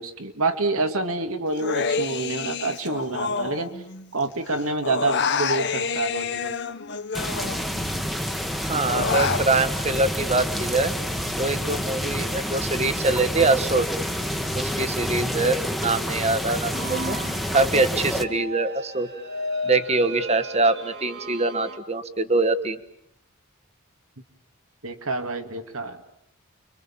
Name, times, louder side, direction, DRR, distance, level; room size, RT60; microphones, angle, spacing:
voice 1, 0.0-3.8 4.1-6.6 24.8-26.0, right 3 dB, 75° right, 7 dB, 2.5 m, -27 dB
Human voice, 1.6-4.2 4.5-8.0 8.3-9.4, left 5 dB, 55° left, 1.3 m, -28 dB
sound 1, 7.1-18.2, equal, ahead, 1.3 m, -28 dB
voice 2, 8.7-10.9 11.4-13.9 14.5-17.2 17.5-19.1 19.6-22.8, right 3 dB, 30° right, 11 dB, 1.5 m, -23 dB
sound 2, 16.7-21.8, equal, 50° right, 2.6 m, -34 dB
29.5 x 24.5 x 7.3 m, 0.75 s
head